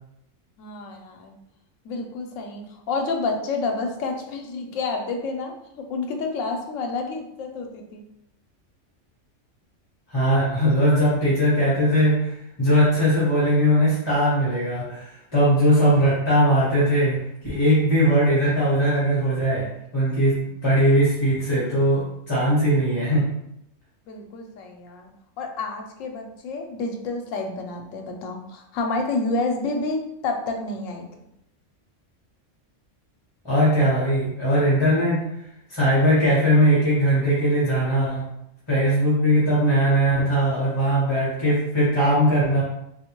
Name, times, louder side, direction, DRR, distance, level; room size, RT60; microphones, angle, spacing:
voice 1, 0.6-1.3 1.8-8.1 24.1-25.1 25.4-31.1, left 3 dB, 85° left, 3 dB, 1.0 m, -29 dB
voice 2, 10.1-23.3 33.4-35.2 35.7-38.3 38.7-42.6, equal, 25° left, -9 dB, 1.0 m, -20 dB
3.4 x 2.5 x 2.9 m, 0.81 s
omnidirectional pair, 1.3 m